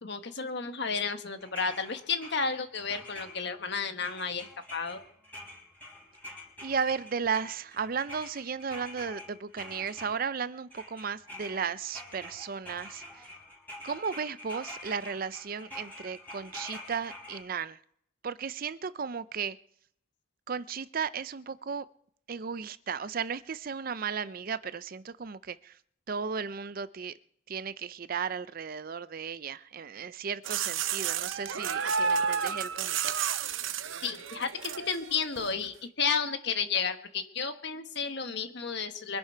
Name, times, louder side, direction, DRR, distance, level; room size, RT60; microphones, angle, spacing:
voice 1, 0.0-5.0 34.0-39.2, left 5 dB, 60° left, 8 dB, 1.4 m, -32 dB
sound 1, 1.4-3.7 4.0-10.4 10.7-17.4, left 1 dB, 10° left, 4.1 m, -46 dB
voice 2, 6.6-13.3 13.8-17.8 18.2-19.6 20.5-21.9 22.3-25.8 26.1-27.1 27.5-33.1, right 6 dB, 45° right, 15 dB, 0.5 m, -35 dB
sound 2, 30.4-35.5, right 6 dB, 80° right, 0.8 m, -31 dB
24.0 x 10.5 x 4.6 m, 0.68 s
head